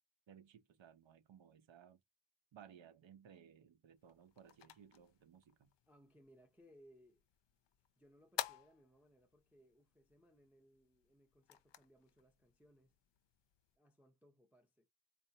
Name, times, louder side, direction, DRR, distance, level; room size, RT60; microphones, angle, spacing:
voice 1, 0.3-2.0 2.5-5.7, right 8 dB, 90° right, 0.8 m, -61 dB
sound 1, 4.0-13.8, left 11 dB, 70° left, 0.6 m, -52 dB
voice 2, 5.9-7.2 8.0-13.0 13.8-14.9, equal, 5° right, 0.4 m, -67 dB
4.3 x 2.5 x 2.7 m
wide cardioid pair, 180°, 44 cm